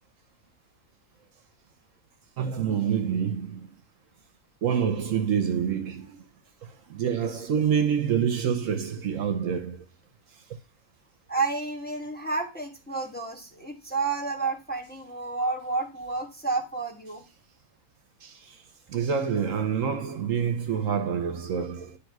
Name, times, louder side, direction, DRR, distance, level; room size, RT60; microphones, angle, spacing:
voice 1, 2.4-3.7 4.6-6.2 6.6-9.8 18.2-18.6 18.9-22.0, right 7 dB, 65° right, 1.1 m, -27 dB
voice 2, 11.3-17.2, right 3 dB, 5° left, 1.2 m, -30 dB
9.2 x 3.4 x 4.6 m
omnidirectional pair, 1.5 m